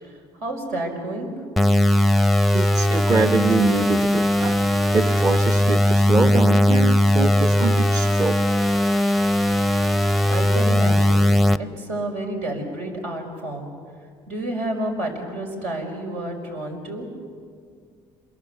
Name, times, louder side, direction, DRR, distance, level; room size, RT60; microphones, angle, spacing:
voice 1, 0.0-1.3 10.3-13.7 14.3-17.1, right 1 dB, 85° right, 2 dB, 5.5 m, -30 dB
sound 1, 1.6-11.6, left 1 dB, ahead, 0.6 m, -19 dB
voice 2, 2.5-4.6 4.9-8.4, right 4 dB, 35° right, 8 dB, 1.0 m, -24 dB
27.5 x 22.5 x 7.1 m, 2.1 s
cardioid pair, 100°, 10 cm